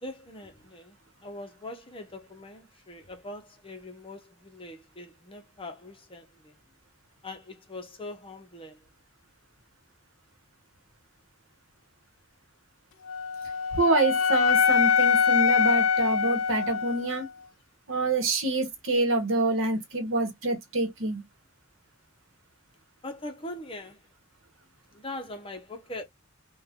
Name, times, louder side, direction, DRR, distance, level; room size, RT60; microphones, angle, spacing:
voice 1, 0.0-1.0 1.2-6.5 7.2-8.8 23.0-24.0 24.9-26.0, left 1 dB, 25° left, 0.7 m, -41 dB
Wind instrument woodwind instrument, 13.1-17.3, left 6 dB, 70° left, 0.3 m, -24 dB
voice 2, 13.7-17.3 17.9-21.2, right 2 dB, 70° right, 1.0 m, -26 dB
2.5 x 2.3 x 3.4 m
head